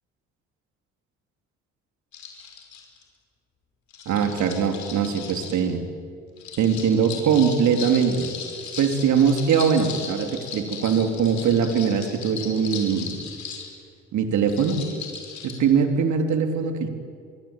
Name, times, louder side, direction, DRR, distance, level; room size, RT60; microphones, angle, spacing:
sound 1, 2.1-3.0 3.9-5.7 6.4-13.7 14.5-15.6, left 6 dB, 65° left, 5.8 m, -37 dB
voice 1, 4.0-5.8 6.6-8.3 8.8-13.1 14.1-14.8 15.4-16.9, right 6 dB, 65° right, 6 dB, 3.4 m, -21 dB
27.0 x 23.5 x 9.0 m, 2.3 s
hypercardioid pair, 60°, 31 cm